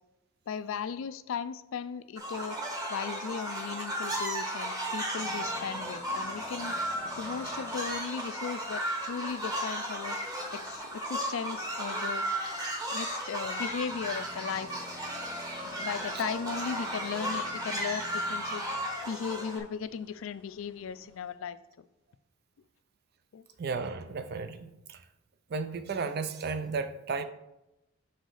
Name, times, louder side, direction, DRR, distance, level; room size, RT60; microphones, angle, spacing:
voice 1, 0.5-2.6 2.9-6.7 7.2-10.2 10.5-12.2 12.9-14.7 15.6-18.6 19.1-21.6 23.3-23.4, left 6 dB, 75° left, 14 dB, 0.4 m, -37 dB
sound 1, 2.2-19.6, right 1 dB, 20° right, 1.0 m, -35 dB
sound 2, 5.2-21.3, left 4 dB, 5° left, 0.8 m, -52 dB
voice 2, 23.6-25.0 25.5-27.2, right 4 dB, 50° right, 10 dB, 0.4 m, -34 dB
6.4 x 4.9 x 3.9 m, 0.92 s
head